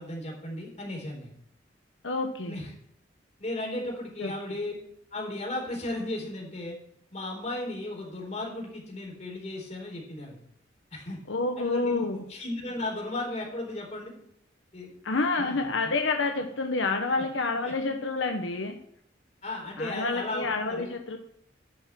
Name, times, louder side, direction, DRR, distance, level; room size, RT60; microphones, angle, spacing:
voice 1, 0.0-1.4 2.4-2.7 3.4-4.7 5.1-6.8 7.1-10.4 10.9-11.2 11.6-14.1 14.7-14.9 15.4-15.7 17.1-17.2 17.6-17.7 19.4-20.9, left 1 dB, 35° left, -1 dB, 4.0 m, -35 dB
voice 2, 2.0-2.5 4.2-4.3 11.3-12.2 15.0-18.8 19.8-21.2, left 3 dB, 85° left, 4 dB, 1.1 m, -28 dB
11.0 x 5.9 x 7.5 m, 0.72 s
head